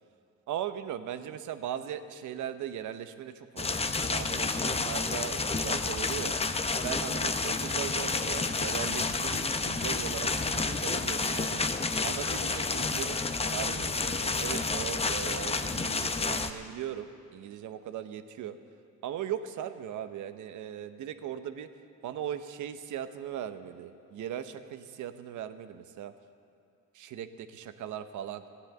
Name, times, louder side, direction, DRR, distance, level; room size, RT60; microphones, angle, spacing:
voice 1, 0.5-6.3 6.8-11.6 12.0-18.6 19.0-21.7 22.0-26.1 27.0-28.4, right 10 dB, 75° right, 10 dB, 0.8 m, -38 dB
sound 1, 3.6-16.5, left 4 dB, 20° left, 0.7 m, -30 dB
13.5 x 9.9 x 7.9 m, 2.5 s
cardioid pair, 90°, 30 cm